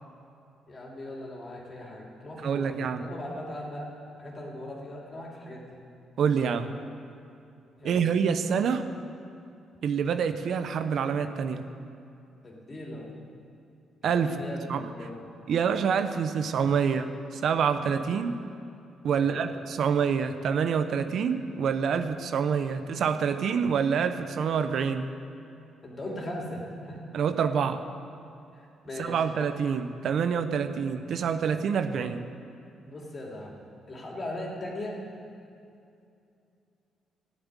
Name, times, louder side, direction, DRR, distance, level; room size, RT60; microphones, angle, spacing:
voice 1, 0.7-3.9 4.2-5.8 7.8-8.2 12.4-13.2 14.0-15.3 19.1-19.5 25.8-27.0 28.5-29.2 32.8-33.6 33.9-35.0, left 1 dB, 35° left, -2 dB, 3.4 m, -39 dB
voice 2, 2.4-3.0 6.2-6.7 7.8-8.8 9.8-11.6 14.0-14.3 14.7-14.8 15.5-18.4 19.0-25.1 27.1-27.8 29.0-32.2, right 6 dB, 65° right, 9 dB, 0.8 m, -26 dB
14.5 x 7.4 x 9.7 m, 2.6 s
cardioid pair, 90°, 0 cm